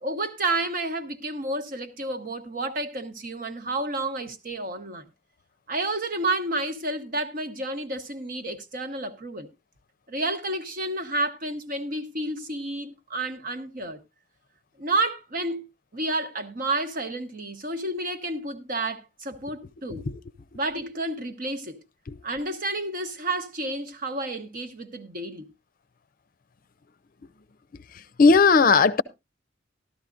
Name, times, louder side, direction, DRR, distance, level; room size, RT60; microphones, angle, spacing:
voice 1, 0.0-5.0 5.7-9.5 10.1-14.0 14.8-15.7 15.9-20.0 20.5-21.8 22.2-25.5, right 2 dB, 50° right, 1.1 m, -30 dB
voice 2, 19.9-20.2 22.1-22.2 28.2-29.0, left 4 dB, 50° left, 0.5 m, -18 dB
13.0 x 13.0 x 2.5 m
head